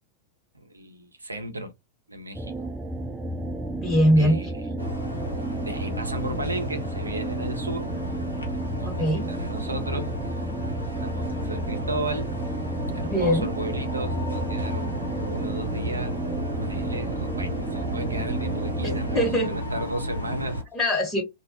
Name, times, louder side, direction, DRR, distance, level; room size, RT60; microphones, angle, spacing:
voice 1, 0.5-1.7 2.1-2.7 4.2-4.6 5.7-7.9 8.7-10.1 11.0-12.3 12.9-14.9 15.3-16.2 16.6-20.6, right 2 dB, 80° right, 0.5 m, -34 dB
sound 1, 2.3-19.3, right 1 dB, 10° right, 0.3 m, -32 dB
voice 2, 3.8-4.4 8.8-9.3 12.9-13.5 19.1-19.6 20.7-21.2, equal, 10° left, 1.1 m, -22 dB
sound 2, 4.8-20.6, equal, 85° left, 0.8 m, -33 dB
2.3 x 2.0 x 2.7 m
figure-of-eight pair, 90°, 0 cm